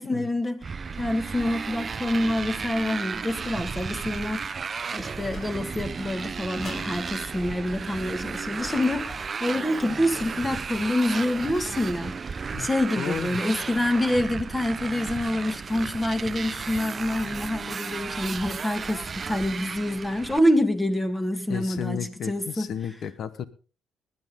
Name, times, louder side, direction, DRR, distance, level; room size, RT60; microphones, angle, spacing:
voice 1, 0.0-4.5 4.9-22.7, left 1 dB, 15° left, 2.1 m, -27 dB
Motorcycle, 0.6-20.4, right 5 dB, 40° right, 0.7 m, -34 dB
sound 1, 5.3-6.1 6.6-7.5 8.6-9.4, left 1 dB, 45° left, 7.3 m, -44 dB
voice 2, 13.0-13.4 21.5-23.4, left 8 dB, 65° left, 1.2 m, -33 dB
20.0 x 10.5 x 3.8 m
cardioid pair, 90°, 0 cm